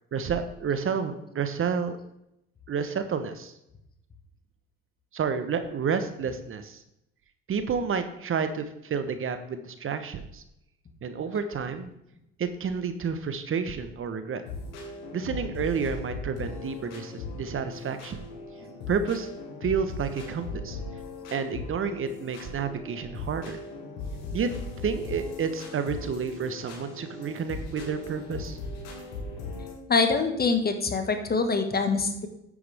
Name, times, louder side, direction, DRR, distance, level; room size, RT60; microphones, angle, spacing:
voice 1, 0.1-2.0 2.7-3.5 5.1-6.8 7.5-10.4 11.0-11.9 12.4-14.4 15.1-18.2 18.9-19.3 19.6-20.8 21.3-23.6 24.3-24.5 24.8-28.6, right 6 dB, 45° right, 9 dB, 1.2 m, -30 dB
sound 1, 14.4-29.7, left 3 dB, 75° left, 3.7 m, -38 dB
voice 2, 29.9-32.3, left 4 dB, 30° left, 6 dB, 1.7 m, -24 dB
10.0 x 8.6 x 3.5 m, 0.82 s
hypercardioid pair, 70°, 30 cm